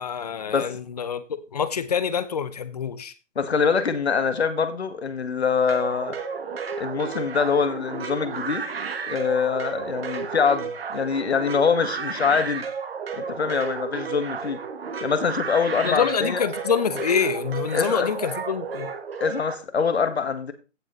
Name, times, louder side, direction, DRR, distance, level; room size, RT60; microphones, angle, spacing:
voice 1, 0.0-3.1 15.8-18.9, left 7 dB, 30° left, 14 dB, 0.8 m, -26 dB
voice 2, 3.3-6.1 6.8-8.6 9.1-12.7 13.1-14.6 15.0-16.4 17.7-18.1 19.2-20.5, left 6 dB, 55° left, 10 dB, 1.5 m, -24 dB
sound 1, 5.7-19.6, right 5 dB, 50° right, 1.4 m, -32 dB
15.5 x 6.2 x 3.1 m, 0.31 s
figure-of-eight pair, 140°, 38 cm